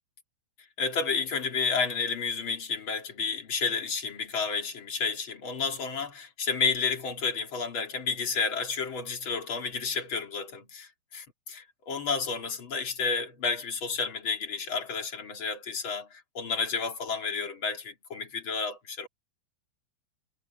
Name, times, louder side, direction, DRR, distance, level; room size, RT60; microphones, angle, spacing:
voice 1, 0.8-19.1, left 5 dB, 35° left, 2.3 m, -31 dB
omnidirectional pair, 5.5 m